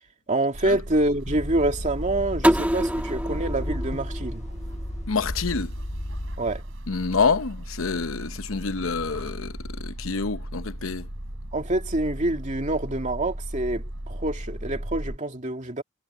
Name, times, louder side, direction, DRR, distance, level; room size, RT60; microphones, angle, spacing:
voice 1, 0.3-4.4 6.4-6.6 11.5-15.8, right 2 dB, 35° right, 2.4 m, -26 dB
sound 1, 0.5-15.2, right 1 dB, 75° right, 3.4 m, -37 dB
sound 2, 1.3-6.6, left 1 dB, 35° left, 1.5 m, -34 dB
sound 3, 2.4-5.2, equal, 5° right, 1.6 m, -26 dB
voice 2, 5.1-5.7 6.9-11.1, left 4 dB, 75° left, 0.9 m, -27 dB
head